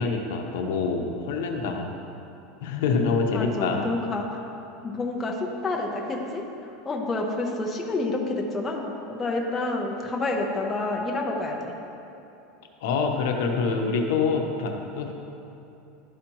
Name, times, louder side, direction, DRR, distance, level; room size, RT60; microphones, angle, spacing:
voice 1, 0.0-1.9 2.6-3.8 12.8-15.1, left 4 dB, 75° left, 2 dB, 0.8 m, -26 dB
voice 2, 3.3-4.5 4.8-11.7 13.8-13.9, left 2 dB, 15° left, 0 dB, 0.7 m, -29 dB
12.0 x 5.0 x 3.0 m, 2.8 s
supercardioid pair, 145°, 0 cm